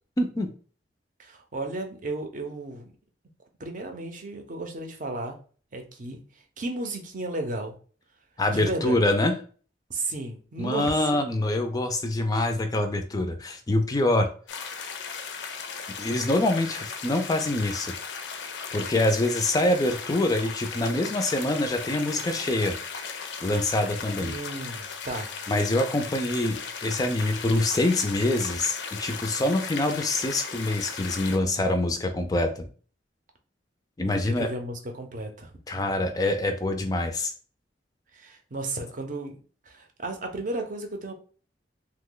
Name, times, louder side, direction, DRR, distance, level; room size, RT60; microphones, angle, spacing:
voice 1, 0.2-0.5 8.4-9.3 10.6-14.3 16.0-17.9 18.7-22.7 23.4-24.3 25.5-32.7 34.0-34.5 35.7-37.3, left 1 dB, 20° left, 6 dB, 0.3 m, -25 dB
voice 2, 1.2-2.9 3.6-5.4 5.7-6.2 6.6-7.8 8.5-9.0 9.9-11.2 24.2-25.3 34.0-35.9 38.1-39.4 39.6-41.1, right 2 dB, 50° right, 5 dB, 0.6 m, -34 dB
sound 1, 14.5-31.4, left 5 dB, 85° left, 0.5 m, -37 dB
2.9 x 2.1 x 3.7 m, 0.40 s
head